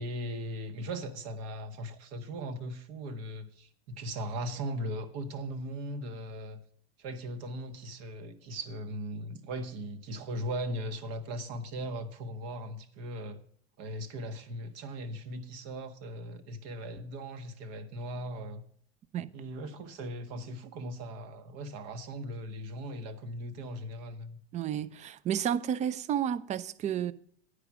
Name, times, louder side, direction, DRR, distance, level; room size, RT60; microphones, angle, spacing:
voice 1, 0.0-6.6 7.0-13.4 13.8-18.6 19.3-24.4, right 1 dB, 50° right, 1.1 m, -38 dB
voice 2, 24.5-27.1, right 9 dB, 20° right, 0.4 m, -31 dB
9.8 x 4.9 x 7.1 m
hypercardioid pair, 80°, 33 cm